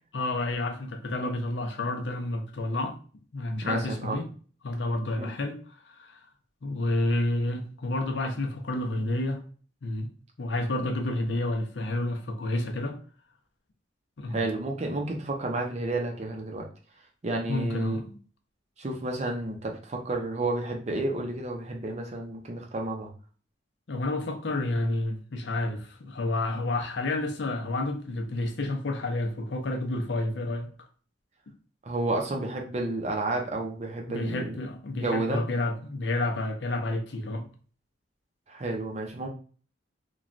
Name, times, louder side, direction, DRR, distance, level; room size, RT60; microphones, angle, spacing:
voice 1, 0.1-3.0 3.3-4.3 4.6-6.2 6.6-9.4 9.8-10.1 10.4-13.0 14.2-14.5 17.5-18.2 23.9-30.7 34.1-37.5, left 2 dB, 70° left, 0.5 m, -30 dB
voice 2, 3.6-4.2 5.2-5.3 14.3-16.6 17.2-18.0 18.8-23.1 31.8-34.6 35.0-35.4 38.5-39.3, right 2 dB, 35° right, 0.5 m, -31 dB
3.0 x 2.2 x 2.4 m
head